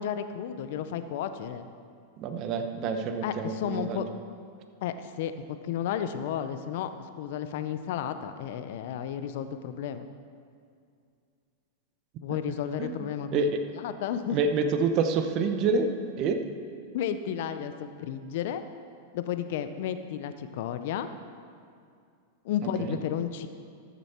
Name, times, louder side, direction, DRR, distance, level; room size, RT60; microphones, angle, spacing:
voice 1, 0.0-1.7 3.2-4.0 4.8-5.3 5.6-6.9 7.2-10.1 12.2-13.5 13.7-14.4 16.9-17.7 18.0-18.6 19.1-21.1 22.4-23.5, left 9 dB, 65° left, 10 dB, 0.6 m, -32 dB
voice 2, 2.2-4.0 12.8-12.9 13.3-13.6 14.3-15.9 16.2-16.4 22.8-23.0, right 4 dB, 45° right, 7 dB, 0.9 m, -27 dB
13.5 x 6.8 x 4.4 m, 2.3 s
hypercardioid pair, 115°, 0 cm